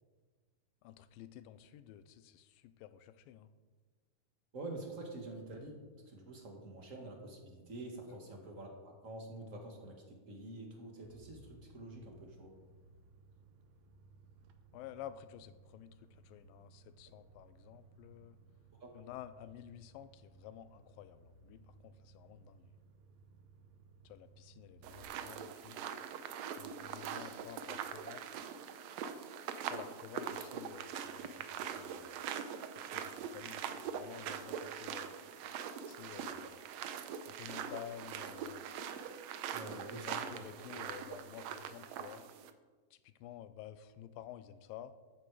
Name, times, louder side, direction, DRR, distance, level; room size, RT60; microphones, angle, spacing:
voice 1, 0.8-3.5 8.1-8.2 14.7-18.4 18.9-22.7 24.0-25.8 26.6-28.4 29.7-32.3 32.7-35.2 35.9-36.6 37.2-38.7 39.6-42.3 42.9-44.9, left 11 dB, 90° left, 12 dB, 2.3 m, -52 dB
voice 2, 4.5-5.8 6.1-12.5 18.8-18.9 39.5-40.1 40.6-40.7, right 2 dB, 30° right, 2 dB, 1.5 m, -47 dB
sound 1, 11.0-25.0, right 4 dB, 70° right, 2.0 m, -62 dB
sound 2, 24.8-42.5, right 8 dB, 85° right, 1.5 m, -43 dB
13.5 x 10.0 x 4.8 m, 1.4 s
omnidirectional pair, 4.0 m